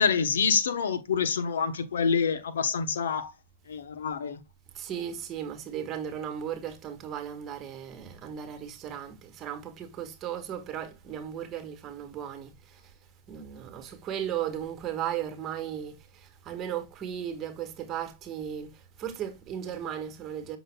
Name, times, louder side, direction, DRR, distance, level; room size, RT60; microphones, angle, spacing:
voice 1, 0.0-3.3 3.7-4.4, left 6 dB, 85° left, 1.0 m, -27 dB
voice 2, 4.7-12.9 13.3-20.6, right 9 dB, 30° right, 1.6 m, -36 dB
7.8 x 6.1 x 2.3 m
hypercardioid pair, 135°, 0 cm